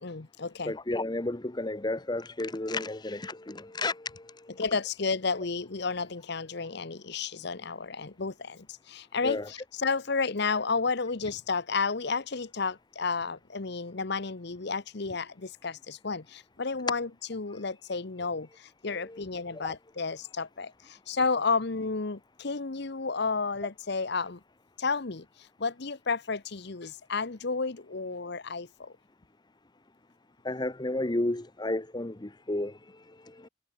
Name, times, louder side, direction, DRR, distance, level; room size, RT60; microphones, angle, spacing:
voice 1, 0.0-0.7 4.6-24.4 24.8-28.9, left 4 dB, 55° left, 0.9 m, -32 dB
voice 2, 0.7-4.2 9.2-9.5 19.0-19.2 19.5-19.7 30.4-32.7 33.4-33.5, left 2 dB, 20° left, 0.8 m, -32 dB
head